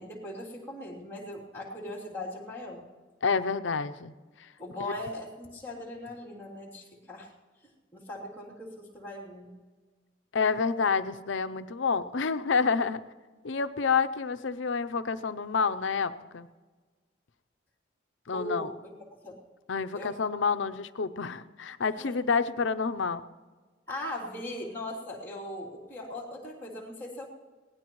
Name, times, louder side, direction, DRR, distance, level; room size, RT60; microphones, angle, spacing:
voice 1, 0.0-2.9 4.6-7.3 7.6-9.5 18.3-18.9 19.2-19.4 19.9-20.2 22.0-22.2 23.9-27.3, left 1 dB, 10° left, -7 dB, 3.0 m, -39 dB
voice 2, 3.2-4.1 4.4-4.5 10.3-13.0 13.4-16.5 18.3-18.7 19.7-23.2, left 5 dB, 75° left, 11 dB, 0.6 m, -28 dB
23.0 x 18.0 x 3.1 m, 1.4 s
head